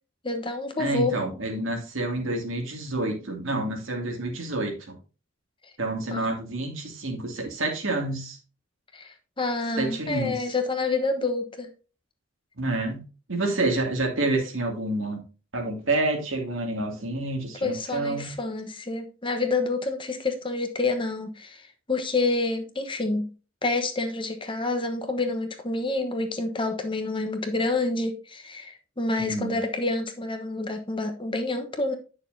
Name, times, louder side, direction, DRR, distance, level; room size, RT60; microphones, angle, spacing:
voice 1, 0.2-1.1 6.1-6.4 8.9-11.7 17.6-23.3 23.6-32.0, left 3 dB, 25° left, 6 dB, 1.1 m, -28 dB
voice 2, 0.8-4.8 5.8-8.4 9.8-10.3 12.6-13.0 13.3-15.2 15.5-18.3 29.2-29.5, right 2 dB, 75° right, 2 dB, 2.4 m, -28 dB
9.8 x 6.6 x 2.7 m, 0.34 s
head